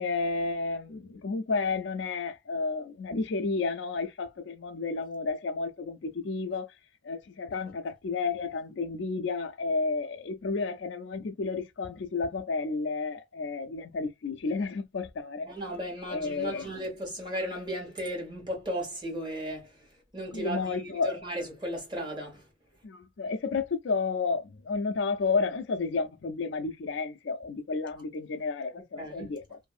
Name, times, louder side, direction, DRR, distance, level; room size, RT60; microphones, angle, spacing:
voice 1, 0.0-6.7 7.0-15.5 16.1-16.7 20.3-21.2 22.8-29.6, left 4 dB, 75° left, 0.4 m, -31 dB
voice 2, 15.5-19.8 20.1-22.5 29.0-29.3, equal, 25° right, 1.3 m, -35 dB
2.6 x 2.5 x 2.4 m
head